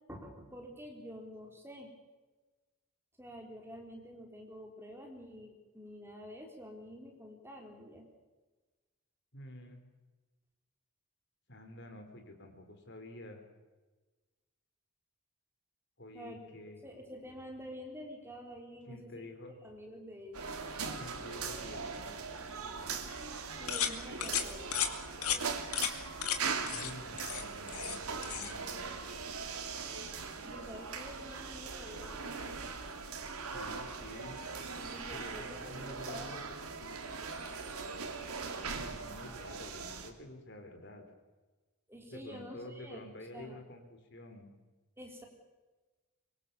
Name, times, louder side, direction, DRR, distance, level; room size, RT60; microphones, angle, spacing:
voice 1, 0.1-1.9 3.2-8.1 16.1-16.5 16.8-19.3 19.6-20.6 23.6-24.8 30.4-32.2 34.8-36.3 41.9-43.0 43.3-43.6 45.0-45.2, equal, 10° right, 2 dB, 3.9 m, -48 dB
voice 2, 9.3-9.8 11.5-13.4 16.0-16.8 18.9-19.5 21.0-22.1 26.6-29.0 29.4-29.5 33.4-34.4 35.1-36.4 36.7-36.8 38.7-41.0 42.1-44.5, left 1 dB, 50° left, 6 dB, 4.3 m, -49 dB
sound 1, 20.3-40.1, right 5 dB, 85° right, 3.0 m, -40 dB
sound 2, 23.7-23.9 24.2-24.4 24.7-24.9 25.2-25.4 25.7-25.9 26.2-26.4 26.7-26.9 27.2-28.0 28.2-28.5, left 9 dB, 85° left, 2.6 m, -33 dB
24.5 x 24.0 x 7.1 m, 1.2 s
head